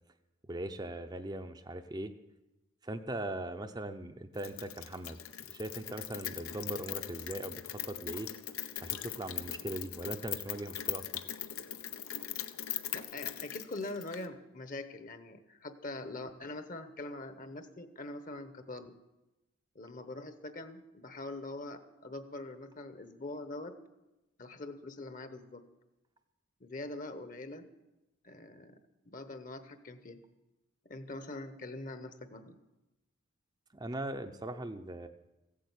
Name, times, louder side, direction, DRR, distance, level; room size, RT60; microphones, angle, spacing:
voice 1, 0.5-2.1 2.8-5.2 5.5-8.3 8.8-11.2 33.7-35.1, right 1 dB, 20° right, 8 dB, 0.6 m, -40 dB
Rain, 4.4-14.3, left 12 dB, 85° left, 0.8 m, -40 dB
voice 2, 12.9-19.0 19.7-23.7 24.4-25.6 26.6-27.6 28.2-28.8 29.1-30.2 30.8-32.5, left 2 dB, 40° left, 10 dB, 1.0 m, -43 dB
15.5 x 8.6 x 8.3 m, 0.99 s
head